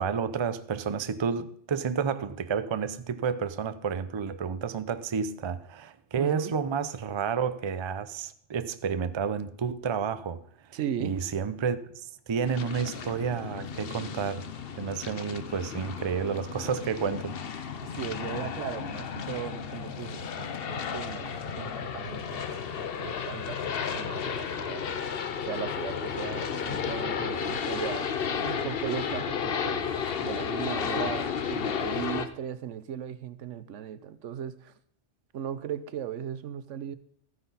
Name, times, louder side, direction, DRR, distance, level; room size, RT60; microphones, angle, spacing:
voice 1, 0.0-10.4 11.0-14.5 14.8-17.4, right 6 dB, 35° right, 0.4 m, -30 dB
voice 2, 6.2-6.5 10.7-11.2 17.9-22.5 23.0-24.9 25.4-34.7 35.3-37.0, right 9 dB, 80° right, 1.1 m, -37 dB
sound 1, 12.4-32.3, left 7 dB, 55° left, 0.9 m, -33 dB
13.5 x 9.6 x 4.1 m
omnidirectional pair, 1.2 m